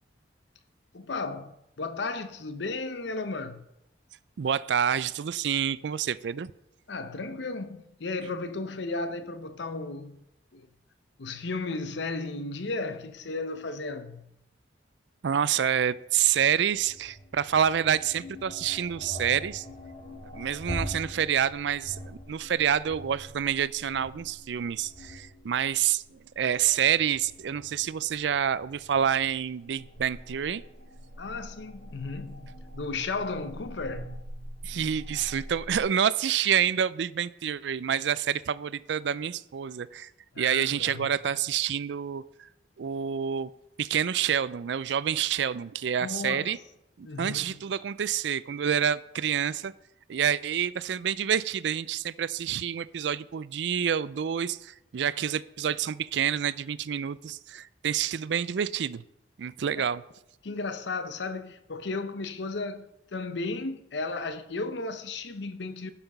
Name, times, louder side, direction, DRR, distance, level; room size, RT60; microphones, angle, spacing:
voice 1, 0.9-3.6 6.9-10.2 10.5-10.7 11.2-14.3 31.2-34.2 40.3-41.1 46.0-46.5 47.0-47.5 60.4-65.9, left 3 dB, 70° left, 0.7 m, -34 dB
voice 2, 4.4-6.5 15.2-19.7 20.3-30.6 34.6-40.1 40.4-42.5 42.8-43.5 43.8-46.6 47.0-49.7 50.1-59.0 59.4-60.0, right 8 dB, 70° right, 0.4 m, -28 dB
sound 1, 16.1-35.8, equal, 45° left, 2.3 m, -44 dB
11.5 x 5.9 x 5.4 m
head